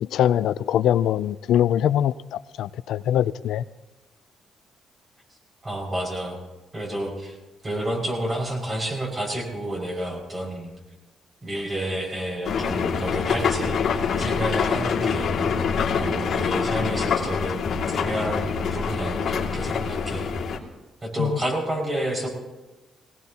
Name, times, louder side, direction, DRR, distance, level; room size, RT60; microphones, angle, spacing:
voice 1, 0.0-3.6 21.2-21.3, left 10 dB, 80° left, 0.4 m, -23 dB
voice 2, 5.6-6.4 6.7-7.4 7.6-10.7 11.4-15.3 15.9-17.5 17.9-20.3 21.0-22.3, right 1 dB, 25° right, 5.9 m, -30 dB
sound 1, 12.4-20.6, left 6 dB, 60° left, 2.3 m, -25 dB
21.5 x 18.0 x 2.9 m
cardioid pair, 90°, 0 cm